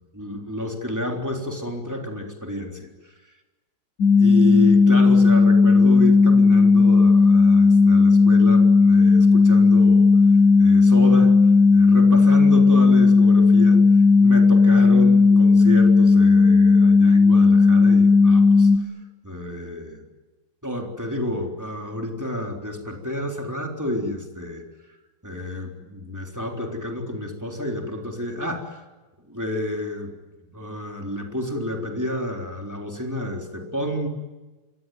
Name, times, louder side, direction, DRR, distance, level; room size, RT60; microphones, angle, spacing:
voice 1, 0.1-3.1 4.2-10.1 10.6-11.3 11.7-13.8 14.2-18.9 19.2-20.0 20.6-24.6 25.2-28.8 29.3-30.1 30.5-34.1, left 1 dB, 10° right, 1 dB, 3.7 m, -30 dB
sound 1, 4.0-18.8, left 4 dB, 55° left, 2.3 m, -14 dB
27.5 x 23.0 x 9.4 m, 1.2 s
omnidirectional pair, 2.3 m